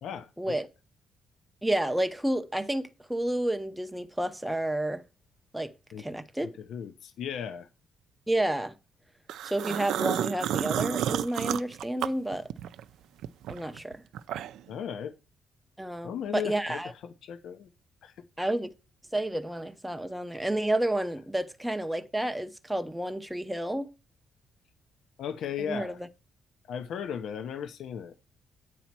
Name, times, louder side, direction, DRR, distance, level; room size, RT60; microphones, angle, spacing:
voice 1, 0.0-0.5 5.9-6.1 6.4-7.7 14.7-15.1 16.0-17.7 18.0-18.1 25.2-26.0 26.7-28.1, left 8 dB, 60° left, 0.7 m, -36 dB
voice 2, 1.6-5.0 5.5-5.7 6.0-6.5 8.3-8.7 9.4-12.5 13.5-14.0 15.8-16.9 18.4-18.7 19.1-23.9 25.6-26.1, right 1 dB, 5° right, 0.6 m, -30 dB
sound 1, 9.3-12.8 13.2-14.7, right 11 dB, 80° right, 0.4 m, -31 dB
9.3 x 4.1 x 5.9 m
cardioid pair, 180°, 0 cm